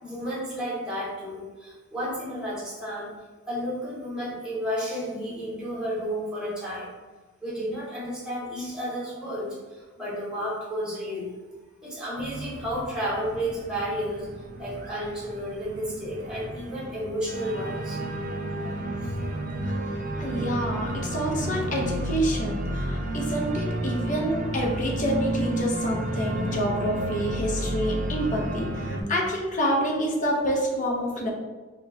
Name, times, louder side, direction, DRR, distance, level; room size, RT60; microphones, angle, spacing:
voice 1, 0.0-3.1 3.5-6.9 7.4-11.3 11.8-14.3 14.6-18.0 19.0-19.1, equal, 5° right, -8 dB, 0.9 m, -32 dB
Organ, 12.2-29.0, right 1 dB, 40° right, 0.4 m, -31 dB
voice 2, 20.2-31.3, equal, 40° left, -1 dB, 0.6 m, -28 dB
4.2 x 2.2 x 2.7 m, 1.3 s
head